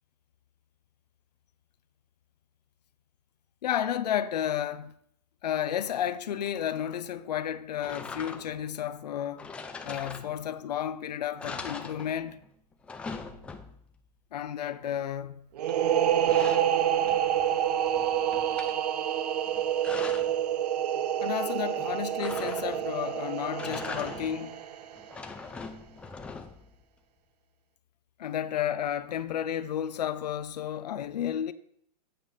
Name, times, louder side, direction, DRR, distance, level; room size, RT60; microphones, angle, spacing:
voice 1, 3.6-4.9 5.4-9.5 9.8-12.4 14.3-15.5 21.2-24.6 28.2-31.5, left 10 dB, 75° left, 0.7 m, -32 dB
sound 1, 7.8-8.7 9.4-10.7 11.0-11.1 11.4-12.5 12.7-14.0 15.7-17.5 17.9-18.8 19.5-20.4 22.2-23.0 23.5-24.5 25.0-26.7, left 4 dB, 5° left, 0.4 m, -41 dB
sound 2, 15.6-25.1, right 10 dB, 70° right, 0.8 m, -28 dB
9.1 x 8.4 x 5.7 m
hypercardioid pair, 155°, 21 cm